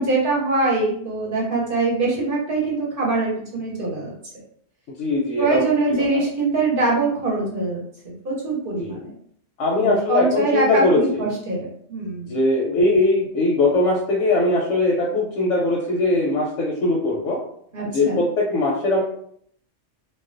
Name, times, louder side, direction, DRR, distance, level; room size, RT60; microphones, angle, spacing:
voice 1, 0.0-4.1 5.4-9.1 9.7-11.6 11.9-12.4 17.7-18.2, right 3 dB, 55° right, -4 dB, 0.8 m, -23 dB
voice 2, 5.0-5.6 6.0-6.2 8.8-9.0 9.6-11.2 12.3-17.4 17.9-19.0, left 2 dB, 90° left, -4 dB, 0.9 m, -20 dB
2.3 x 2.1 x 2.4 m, 0.65 s
omnidirectional pair, 1.2 m